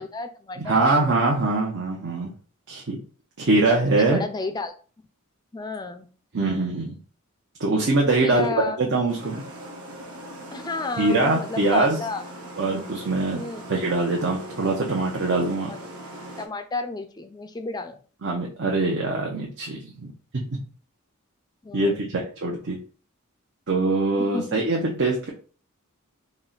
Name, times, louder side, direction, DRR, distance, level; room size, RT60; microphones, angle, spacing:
voice 1, 0.0-1.2 3.9-4.8 5.5-6.1 8.2-8.8 10.5-12.2 13.3-13.6 15.7-15.8 16.4-18.0 21.6-22.2 24.2-24.6, left 3 dB, 20° left, 8 dB, 0.4 m, -32 dB
voice 2, 0.6-2.3 2.7-3.0 3.4-4.2 6.3-7.0 7.6-8.5 8.8-9.4 11.0-12.0 12.6-13.4 13.7-15.7 18.2-20.6 21.7-22.8 23.7-25.3, right 2 dB, 55° right, -1 dB, 0.7 m, -23 dB
sound 1, 9.1-16.5, right 1 dB, 80° right, 0.9 m, -40 dB
4.3 x 2.1 x 3.9 m, 0.39 s
head